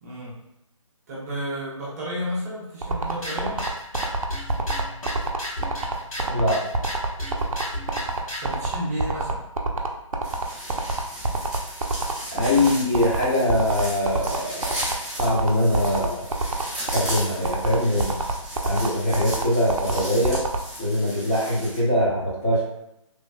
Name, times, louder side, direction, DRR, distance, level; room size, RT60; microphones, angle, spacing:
voice 1, 0.0-0.4 1.1-3.6 8.4-9.4, equal, 30° right, -7 dB, 0.7 m, -31 dB
sound 1, 2.8-20.6, right 2 dB, 85° right, 0.4 m, -26 dB
sound 2, 3.1-8.6, left 1 dB, 85° left, 1.4 m, -34 dB
voice 2, 6.3-6.6 12.3-14.7 15.1-16.2 16.9-18.1 18.6-20.4 20.8-22.6, left 1 dB, 25° left, -8 dB, 1.0 m, -22 dB
sound 3, 10.2-21.8, right 1 dB, ahead, 0.9 m, -36 dB
3.2 x 2.3 x 2.2 m, 0.83 s
figure-of-eight pair, 150°, 17 cm